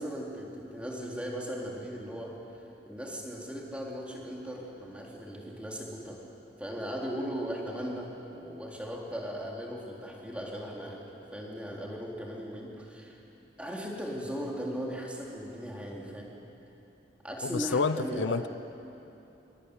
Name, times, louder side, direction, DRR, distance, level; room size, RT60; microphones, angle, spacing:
voice 1, 0.0-2.3 2.9-6.2 6.6-13.2 13.6-16.3 17.2-18.5, equal, 5° right, 3.7 m, -38 dB
voice 2, 17.4-18.5, left 5 dB, 75° left, 0.6 m, -29 dB
25.5 x 22.5 x 10.0 m
head